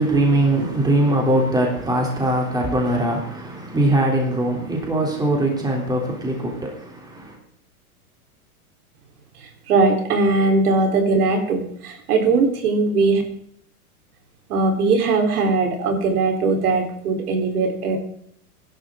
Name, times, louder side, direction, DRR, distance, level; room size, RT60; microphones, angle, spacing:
voice 1, 0.0-7.4, right 1 dB, 10° right, 3.4 m, -21 dB
voice 2, 9.7-13.2 14.5-18.0, right 3 dB, 85° right, 4.1 m, -20 dB
23.0 x 11.5 x 3.8 m
supercardioid pair, 135°, 44 cm